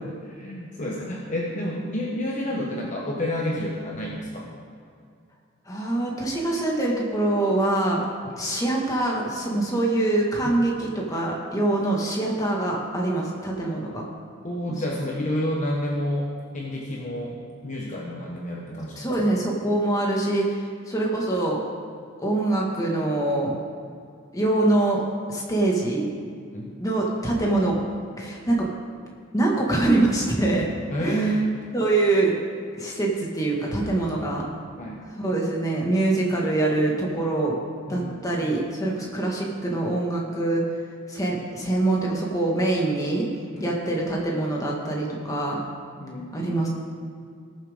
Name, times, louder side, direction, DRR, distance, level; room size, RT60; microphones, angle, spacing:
voice 1, 0.0-4.5 10.4-10.5 14.4-19.3 26.5-26.7 30.9-31.6 34.8-35.0 37.9-38.2 43.5-44.0 46.0-46.6, equal, 40° left, -3 dB, 1.1 m, -29 dB
voice 2, 5.7-8.1 8.4-14.0 19.0-21.6 22.2-23.5 24.3-25.0 25.3-26.1 26.8-27.7 28.2-28.7 29.3-30.7 31.0-31.2 31.7-32.3 32.8-34.4 35.2-37.6 37.9-40.6 41.1-43.3 43.6-45.6 46.3-46.7, right 2 dB, 15° left, -2 dB, 1.8 m, -24 dB
19.0 x 7.3 x 3.7 m, 2.3 s
head